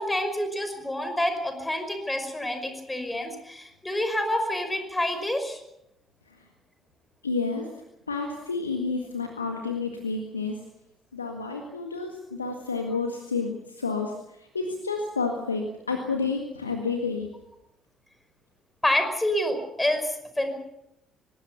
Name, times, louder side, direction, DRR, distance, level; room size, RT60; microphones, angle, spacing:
voice 1, 0.0-5.6 18.8-20.6, left 1 dB, 10° left, 7 dB, 5.5 m, -28 dB
voice 2, 7.2-7.7 8.1-10.6 11.1-17.3, left 4 dB, 85° left, 3 dB, 1.7 m, -30 dB
25.0 x 19.0 x 7.0 m, 0.82 s
figure-of-eight pair, 45°, 0 cm